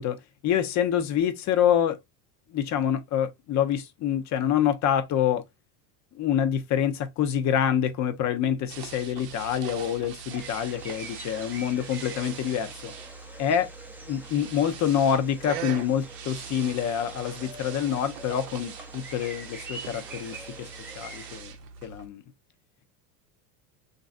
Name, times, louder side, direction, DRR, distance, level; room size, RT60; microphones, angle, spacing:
voice 1, 0.0-2.0 2.5-5.4 6.1-12.9 13.4-13.7 14.0-20.7 21.0-21.5 21.8-22.2, left 9 dB, 40° left, 0.6 m, -26 dB
sound 1, 8.7-22.1, right 7 dB, 90° right, 0.7 m, -42 dB
sound 2, 10.3-21.4, right 2 dB, 5° right, 0.5 m, -45 dB
3.1 x 2.6 x 2.4 m
hypercardioid pair, 95°, 47 cm